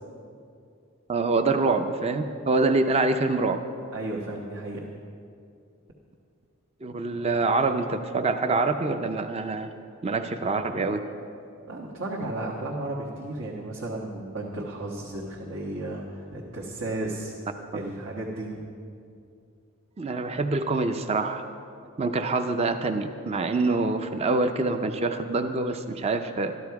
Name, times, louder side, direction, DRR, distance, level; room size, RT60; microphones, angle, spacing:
voice 1, 1.1-3.6 6.8-9.7 10.0-11.0 12.2-12.3 20.0-21.4 22.0-26.6, right 3 dB, 30° right, 7 dB, 0.4 m, -25 dB
voice 2, 3.9-4.9 11.7-17.3 17.7-18.6, right 2 dB, 75° right, -4 dB, 1.3 m, -34 dB
13.0 x 12.5 x 4.7 m, 2.4 s
head